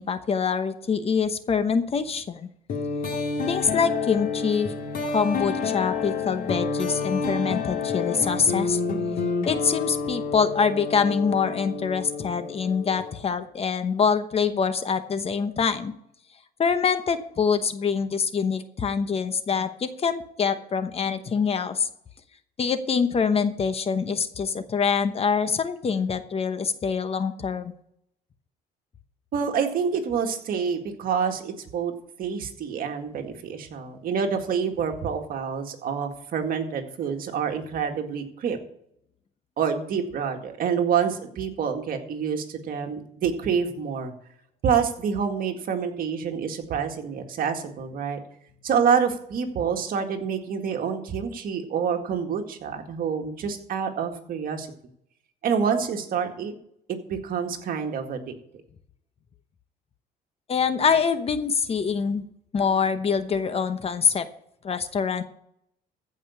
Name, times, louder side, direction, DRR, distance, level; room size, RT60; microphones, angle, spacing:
voice 1, 0.0-2.5 3.5-4.7 5.1-8.8 9.4-15.9 16.6-21.9 22.6-27.7 60.5-62.3 62.5-64.3 64.6-65.2, left 6 dB, 35° left, 11 dB, 1.0 m, -25 dB
sound 1, 2.7-13.3, left 4 dB, 60° left, 2.1 m, -29 dB
voice 2, 29.3-31.9 32.2-38.6 39.6-44.1 44.6-48.2 48.6-54.7 55.4-56.5 56.9-58.2, right 7 dB, 60° right, 4 dB, 2.0 m, -27 dB
15.0 x 5.4 x 7.1 m, 0.72 s
cardioid pair, 110°, 17 cm